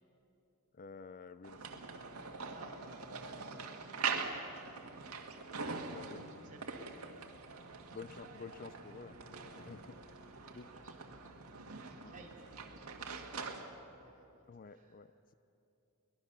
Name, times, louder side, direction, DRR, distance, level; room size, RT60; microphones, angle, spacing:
voice 1, 0.7-1.8 3.5-3.6 5.8-6.2 7.9-10.0 10.5-10.7 12.0-12.1 14.5-15.3, left 5 dB, 40° left, 13 dB, 0.5 m, -51 dB
sound 1, 1.4-13.6, right 5 dB, 85° right, 1.8 m, -43 dB
voice 2, 2.5-3.3 3.7-3.9 5.6-8.0 9.6-15.0, right 2 dB, 35° right, -2 dB, 3.6 m, -61 dB
sound 2, 3.6-11.4, equal, 15° right, 1.7 m, -65 dB
22.5 x 20.5 x 6.8 m, 2.8 s
head